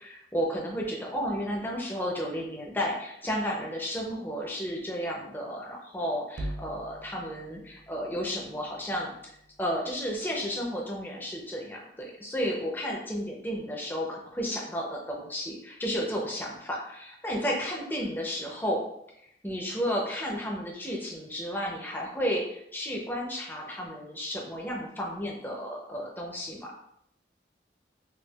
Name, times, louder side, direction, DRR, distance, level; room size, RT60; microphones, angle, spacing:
voice 1, 0.0-18.8 19.4-26.7, equal, 10° left, -2 dB, 0.5 m, -32 dB
sound 1, 6.3-10.7, right 1 dB, 80° right, 0.4 m, -44 dB
4.3 x 2.4 x 2.3 m, 0.76 s
head